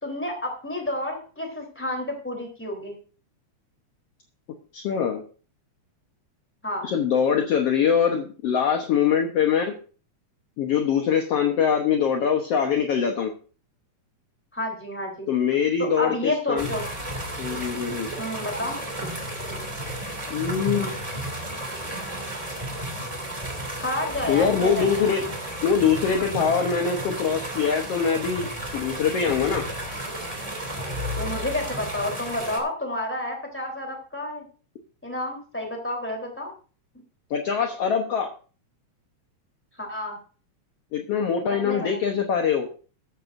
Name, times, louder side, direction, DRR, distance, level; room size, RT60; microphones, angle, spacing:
voice 1, 0.0-2.9 6.6-6.9 14.5-15.3 15.8-16.9 18.2-18.8 23.8-25.1 31.2-34.5 35.0-36.5 39.8-40.2 41.6-41.9, left 1 dB, 5° left, 1 dB, 3.4 m, -30 dB
voice 2, 4.7-5.2 6.8-9.7 10.6-13.3 15.3-16.7 17.4-18.1 20.3-20.9 24.3-25.2 25.6-29.6 37.3-38.3 40.9-42.7, left 7 dB, 60° left, 4 dB, 1.9 m, -23 dB
sound 1, 16.6-32.6, right 1 dB, 10° right, 2.5 m, -33 dB
14.0 x 13.0 x 2.6 m, 0.38 s
omnidirectional pair, 3.5 m